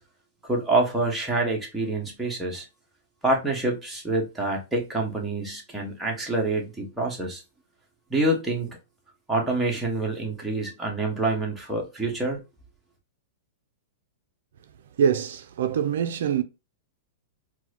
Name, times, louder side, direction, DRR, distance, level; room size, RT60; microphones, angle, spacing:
voice 1, 0.4-2.6 3.2-7.4 8.1-8.8 9.3-12.4, right 2 dB, 5° right, 1.4 m, -26 dB
voice 2, 15.0-16.4, right 8 dB, 70° right, 0.4 m, -24 dB
4.6 x 2.1 x 2.8 m
hypercardioid pair, 130°, 0 cm